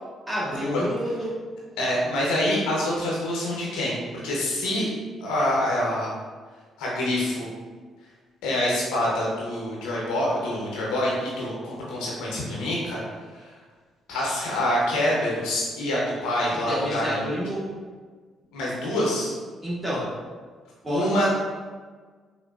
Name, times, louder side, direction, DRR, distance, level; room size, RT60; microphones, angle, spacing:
voice 1, 0.3-1.3 16.7-17.7 19.6-20.1 20.8-21.3, equal, 25° right, -6 dB, 1.3 m, -29 dB
voice 2, 1.8-4.9 5.2-6.1 6.8-7.5 8.4-13.0 14.1-17.2 18.5-19.3 20.9-21.3, left 1 dB, 75° left, -4 dB, 0.7 m, -26 dB
3.7 x 2.2 x 2.3 m, 1.5 s
hypercardioid pair, 50°, 0 cm